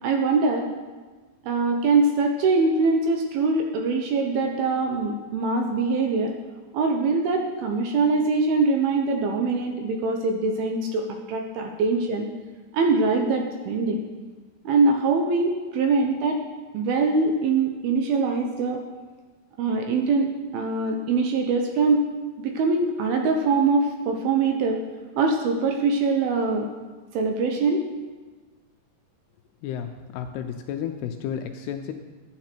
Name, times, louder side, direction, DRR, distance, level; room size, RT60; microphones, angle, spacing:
voice 1, 0.0-0.7 1.4-6.3 6.7-12.3 12.7-14.0 14.7-16.4 16.7-18.8 19.6-22.0 22.4-24.8 25.2-26.7 27.1-27.8, right 3 dB, 75° right, 3 dB, 2.4 m, -23 dB
voice 2, 29.6-31.9, left 8 dB, 80° left, 6 dB, 2.4 m, -32 dB
12.5 x 9.2 x 4.4 m, 1.3 s
omnidirectional pair, 5.0 m